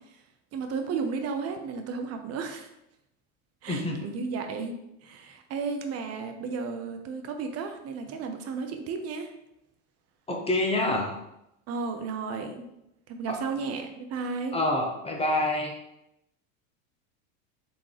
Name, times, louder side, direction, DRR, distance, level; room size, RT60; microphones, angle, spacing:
voice 1, 0.5-2.7 3.6-9.3 11.7-12.7 13.1-14.6, right 5 dB, 35° right, 5 dB, 0.7 m, -33 dB
voice 2, 3.7-4.0 10.3-11.2 13.3-13.4 14.5-15.7, left 1 dB, 15° left, 1 dB, 0.7 m, -27 dB
3.9 x 3.5 x 3.3 m, 0.85 s
hypercardioid pair, 100°, 41 cm